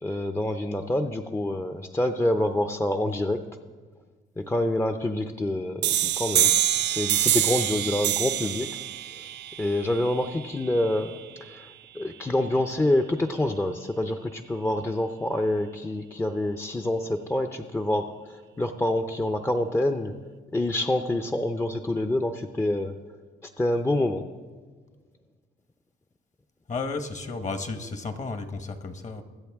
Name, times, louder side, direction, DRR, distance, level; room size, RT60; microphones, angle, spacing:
voice 1, 0.0-3.4 4.4-6.5 6.8-8.8 9.6-11.1 11.4-20.1 20.5-22.9 23.4-24.3, left 1 dB, 15° left, 6 dB, 0.6 m, -27 dB
sound 1, 5.8-11.2, right 12 dB, 60° right, 0.4 m, -26 dB
voice 2, 26.7-29.2, left 3 dB, 40° left, 9 dB, 1.1 m, -33 dB
23.0 x 8.0 x 3.5 m, 1.4 s
cardioid pair, 90°, 20 cm